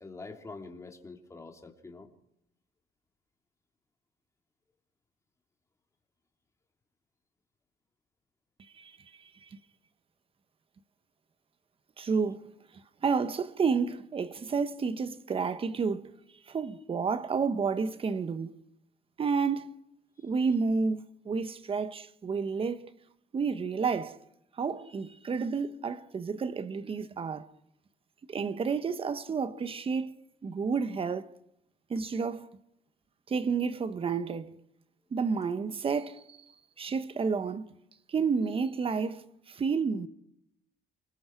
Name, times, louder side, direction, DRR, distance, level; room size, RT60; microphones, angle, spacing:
voice 1, 0.0-2.1 20.2-20.3, left 3 dB, 15° left, 3.0 m, -45 dB
voice 2, 12.0-12.5 13.0-16.1 16.5-18.5 19.2-19.8 20.2-22.9 23.3-24.2 24.6-27.5 28.3-30.1 30.4-31.3 31.9-32.5 33.3-34.5 35.1-36.4 36.8-37.7 38.1-40.1, right 5 dB, 35° right, 1.3 m, -30 dB
29.0 x 20.0 x 4.6 m
cardioid pair, 110°, 17 cm